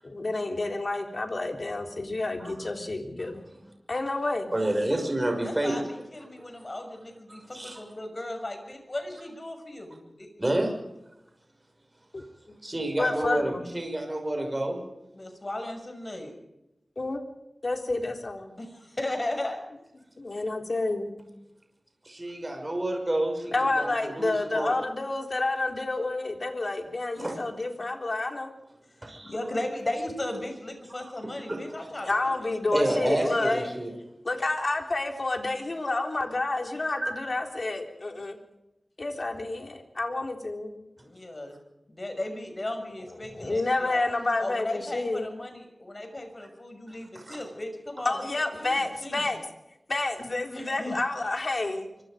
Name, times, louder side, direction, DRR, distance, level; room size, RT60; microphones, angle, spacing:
voice 1, 0.0-3.4 3.9-4.5 12.1-12.2 13.0-13.7 17.0-17.2 17.6-18.6 20.2-21.2 23.5-28.5 32.0-33.6 34.2-38.4 39.0-40.8 43.3-45.3 48.1-49.4 49.9-51.9, left 2 dB, 50° left, 4 dB, 3.7 m, -29 dB
voice 2, 4.5-5.8 6.4-6.5 7.3-7.8 10.4-10.7 12.6-14.8 22.0-24.8 27.2-27.4 29.0-29.3 31.0-31.1 31.5-31.8 32.7-33.9 37.0-37.1 43.4-43.5 47.1-47.4, right 1 dB, 25° right, 3 dB, 6.0 m, -29 dB
voice 3, 5.4-10.3 15.1-16.3 18.6-19.6 29.2-32.4 32.9-33.8 41.0-41.6 41.9-44.0 44.4-49.3 50.5-51.0, left 1 dB, 35° left, 5 dB, 6.6 m, -36 dB
25.0 x 24.5 x 5.2 m, 0.91 s
wide cardioid pair, 75°, 0 cm